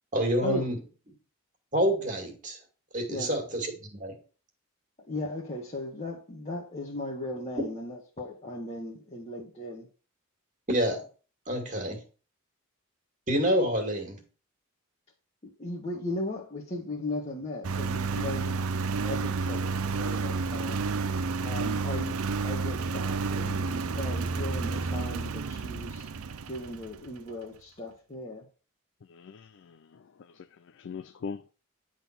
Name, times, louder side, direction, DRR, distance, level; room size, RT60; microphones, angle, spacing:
voice 1, 0.1-0.8 1.7-2.6 2.9-4.2 10.7-11.0 11.5-12.0 13.3-14.2, equal, 35° right, 2.1 m, -27 dB
voice 2, 5.0-9.9 15.4-18.7 19.0-20.8 21.4-22.2 22.4-26.1 26.5-28.5, left 2 dB, 30° left, 1.2 m, -37 dB
Engine, 17.6-27.1, right 4 dB, 75° right, 0.6 m, -30 dB
voice 3, 29.1-30.5 30.7-31.4, left 5 dB, 55° left, 0.3 m, -41 dB
10.0 x 3.8 x 5.8 m
head